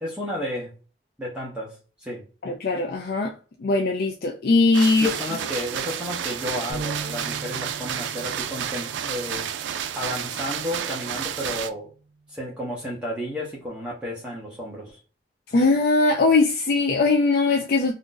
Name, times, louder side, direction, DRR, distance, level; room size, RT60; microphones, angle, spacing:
voice 1, 0.0-0.7 1.2-2.2 5.0-11.9 12.3-15.0, left 1 dB, 5° right, 0.6 m, -32 dB
voice 2, 2.4-3.3 3.6-5.1 15.5-17.9, left 3 dB, 55° left, 0.4 m, -20 dB
sound 1, 4.7-11.7, right 9 dB, 85° right, 0.4 m, -31 dB
sound 2, 6.7-12.9, right 3 dB, 45° right, 0.7 m, -41 dB
2.5 x 2.4 x 3.7 m
head